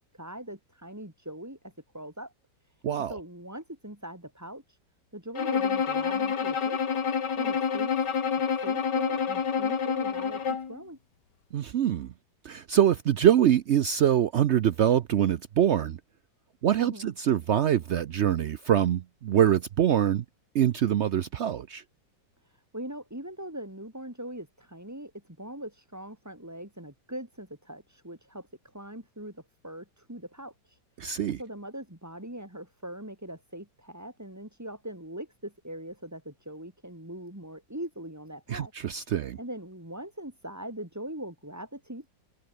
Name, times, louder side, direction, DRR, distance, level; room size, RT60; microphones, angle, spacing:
voice 1, 0.0-2.3 2.6-2.7 3.1-4.8 5.1-6.8 7.4-8.0 8.6-11.0 16.8-17.1 22.4-30.8 31.4-38.7 39.0-42.1, right 1 dB, 10° right, 3.4 m, -41 dB
voice 2, 2.8-3.1 11.5-12.1 12.4-16.0 16.6-20.2 20.5-21.8 31.0-31.4 38.5-39.4, right 10 dB, 85° right, 0.6 m, -24 dB
Bowed string instrument, 5.4-10.8, left 6 dB, 65° left, 2.6 m, -28 dB
omnidirectional pair, 2.0 m